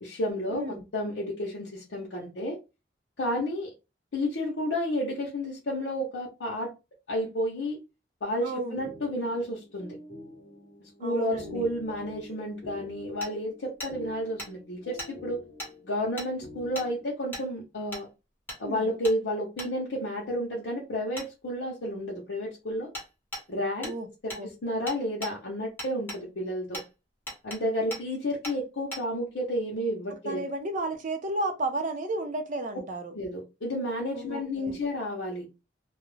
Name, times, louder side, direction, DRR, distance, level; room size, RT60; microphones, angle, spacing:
voice 1, 0.0-2.6 3.2-3.7 4.1-6.7 7.1-7.8 8.2-10.0 11.0-15.4 15.8-18.1 18.6-22.9 23.5-23.9 24.2-26.8 27.4-30.4 33.1-35.5, equal, 85° left, 0.7 m, -31 dB
voice 2, 0.5-0.8 8.4-8.8 11.0-11.6 18.6-18.9 23.8-24.1 24.3-24.5 30.3-33.1 34.1-34.8, right 2 dB, 45° right, 0.5 m, -33 dB
sound 1, 8.8-17.1, left 1 dB, 50° left, 0.9 m, -47 dB
Hammer, 13.2-13.3 13.8-13.9 14.4-14.5 15.0-15.1 15.6-15.7 16.2-16.3 16.8-16.9 17.3-17.5 17.9-18.0 18.5-18.6 19.0-19.2 19.6-19.7 21.2-21.3 22.9-23.1 23.3-23.5 23.8-24.0 24.3-24.4 24.9-25.3 25.8-26.2 26.7-26.9 27.3-27.6 27.9-28.0 28.4-28.6 28.9-29.0, left 1 dB, 10° left, 0.9 m, -38 dB
2.3 x 2.0 x 3.1 m
head